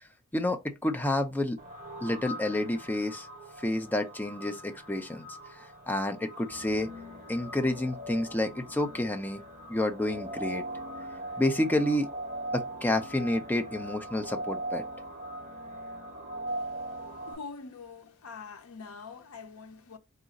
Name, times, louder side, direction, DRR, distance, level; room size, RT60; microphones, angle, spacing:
voice 1, 0.3-1.6 2.0-3.3 3.6-5.3 5.5-6.9 7.3-9.4 9.7-10.6 11.4-12.1 12.5-14.8, left 1 dB, 10° left, 0.5 m, -29 dB
sound 1, 1.6-17.3, right 1 dB, 30° right, 1.1 m, -40 dB
voice 2, 16.5-20.0, left 5 dB, 75° left, 0.6 m, -45 dB
3.9 x 2.4 x 4.0 m
head